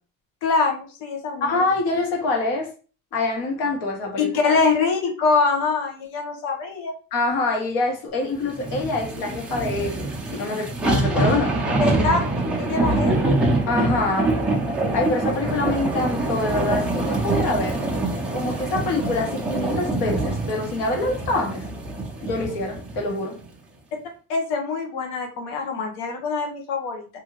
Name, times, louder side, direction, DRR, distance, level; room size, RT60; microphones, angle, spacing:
voice 1, 0.4-1.6 4.2-6.9 11.8-12.2 12.6-13.4 24.3-27.1, left 4 dB, 90° left, 1.0 m, -24 dB
voice 2, 1.4-2.7 3.1-4.6 7.1-11.6 13.7-14.3 14.9-17.8 18.3-21.7 22.2-23.3, left 2 dB, 70° left, 1.2 m, -25 dB
sound 1, 8.5-23.0 23.4-23.5, right 2 dB, 5° right, 0.3 m, -25 dB
2.8 x 2.6 x 2.9 m
cardioid pair, 150°, 37 cm